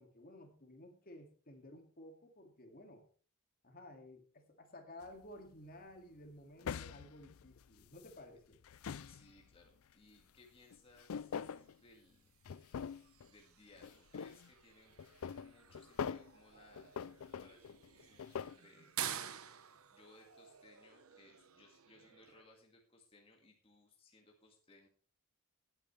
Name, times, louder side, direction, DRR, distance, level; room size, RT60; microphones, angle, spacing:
voice 1, 0.0-3.1 3.6-8.6, left 1 dB, 45° left, 4 dB, 2.2 m, -55 dB
sound 1, 5.0-5.2 6.6-8.1 8.5-9.6 10.7-11.8 12.4-13.3 13.8-14.5 15.0-16.3 16.8-18.6, left 7 dB, 70° left, 0.4 m, -43 dB
voice 2, 9.1-12.3 13.3-14.9 15.4-16.9 17.2-18.9 19.9-24.9, left 2 dB, 25° left, 0 dB, 2.0 m, -64 dB
sound 2, 10.5-22.5, right 10 dB, 75° right, 1.0 m, -50 dB
18.5 x 8.9 x 3.3 m, 0.39 s
head